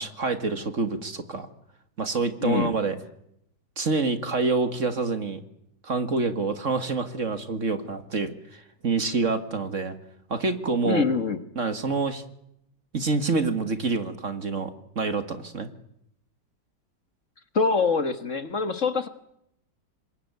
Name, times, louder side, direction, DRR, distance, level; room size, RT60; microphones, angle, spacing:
voice 1, 0.0-1.5 2.0-3.0 3.8-5.4 5.8-9.9 10.3-11.0 11.6-12.2 12.9-15.7, right 4 dB, 45° right, 10 dB, 2.0 m, -27 dB
voice 2, 2.4-2.7 10.8-11.4 17.6-19.1, left 4 dB, 45° left, 11 dB, 1.7 m, -24 dB
27.0 x 21.5 x 9.5 m, 0.77 s
omnidirectional pair, 2.0 m